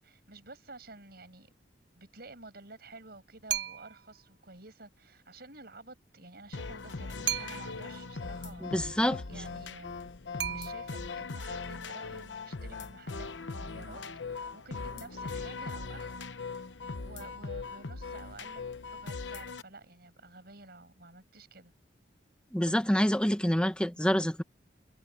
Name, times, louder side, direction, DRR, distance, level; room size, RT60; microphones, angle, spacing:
voice 1, 0.0-1.5 1.9-9.0 9.3-10.1 10.5-21.7, right 2 dB, 55° right, 6.8 m, -51 dB
sound 1, 3.5-4.1 7.3-8.0 10.4-11.2, right 11 dB, 75° right, 0.8 m, -35 dB
sound 2, 6.5-19.6, left 4 dB, 80° left, 1.0 m, -40 dB
voice 2, 8.6-9.2 22.5-24.4, equal, 5° left, 1.1 m, -27 dB
head